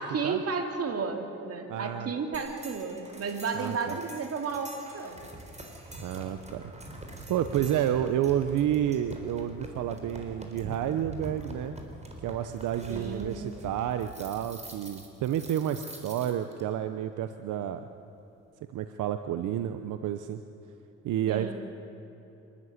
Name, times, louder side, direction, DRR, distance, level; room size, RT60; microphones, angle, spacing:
voice 1, 0.0-5.3 12.9-13.6 21.3-21.5, right 5 dB, 50° right, 4 dB, 2.9 m, -33 dB
voice 2, 1.7-2.1 3.5-4.0 6.0-6.7 7.3-11.8 12.2-17.8 18.7-20.4 21.0-21.5, right 10 dB, 85° right, 9 dB, 0.9 m, -30 dB
sound 1, 2.3-16.6, right 1 dB, 20° right, 3.9 m, -44 dB
25.5 x 13.0 x 9.7 m, 3.0 s
cardioid pair, 90°, 30 cm